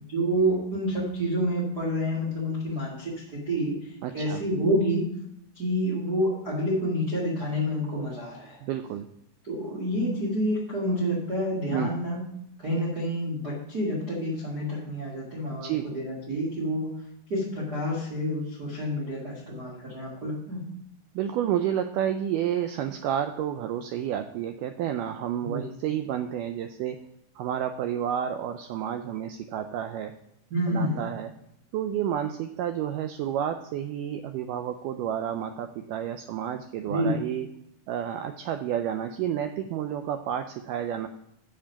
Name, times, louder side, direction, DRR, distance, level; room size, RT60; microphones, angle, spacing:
voice 1, 0.1-3.7 4.1-5.1 5.5-8.6 9.4-12.2 12.6-16.9 17.3-20.6 25.4-25.6 30.5-31.0 36.9-37.2, equal, 35° right, -5 dB, 1.8 m, -28 dB
voice 2, 4.0-4.4 8.6-9.1 11.7-11.9 15.5-15.9 21.1-27.0 27.3-30.1 30.7-31.3 31.7-37.5 37.9-41.1, right 10 dB, 90° right, 7 dB, 1.8 m, -30 dB
7.4 x 7.2 x 5.7 m, 0.79 s
omnidirectional pair, 4.3 m